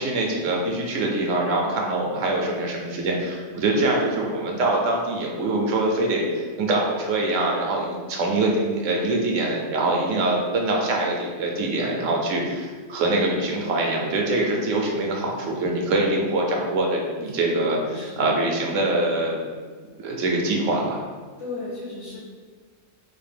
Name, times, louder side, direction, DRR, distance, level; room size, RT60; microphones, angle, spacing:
voice 1, 0.0-19.4 20.0-21.0, right 2 dB, 80° right, 0 dB, 1.1 m, -24 dB
voice 2, 17.8-18.3 21.4-22.2, left 3 dB, 80° left, -12 dB, 1.5 m, -35 dB
4.1 x 2.5 x 3.3 m, 1.5 s
omnidirectional pair, 1.3 m